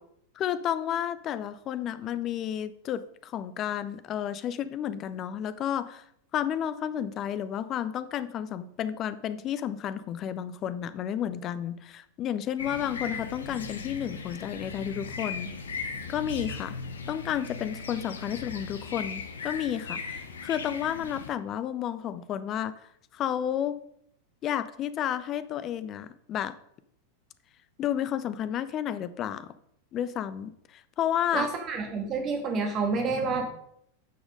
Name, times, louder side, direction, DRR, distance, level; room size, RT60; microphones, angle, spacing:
voice 1, 0.4-6.0 6.3-15.5 16.1-16.8 17.1-22.7 23.1-23.8 24.4-26.6 27.8-29.5 29.9-31.5, left 10 dB, 30° left, 14 dB, 0.7 m, -31 dB
sound 1, 12.6-21.3, left 5 dB, 70° left, 1.1 m, -38 dB
voice 2, 31.3-33.5, right 4 dB, 30° right, 4 dB, 2.1 m, -28 dB
9.5 x 6.3 x 5.2 m, 0.71 s
figure-of-eight pair, 90°, 0 cm